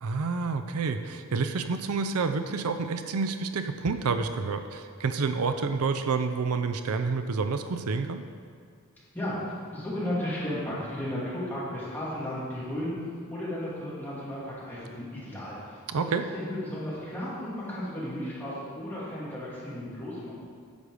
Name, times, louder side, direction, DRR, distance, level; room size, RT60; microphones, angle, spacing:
voice 1, 0.0-8.2 15.9-16.2, right 4 dB, 85° right, 8 dB, 0.5 m, -29 dB
voice 2, 9.7-12.9 13.3-20.3, left 1 dB, 10° left, -9 dB, 2.8 m, -34 dB
10.5 x 6.5 x 5.0 m, 2.2 s
head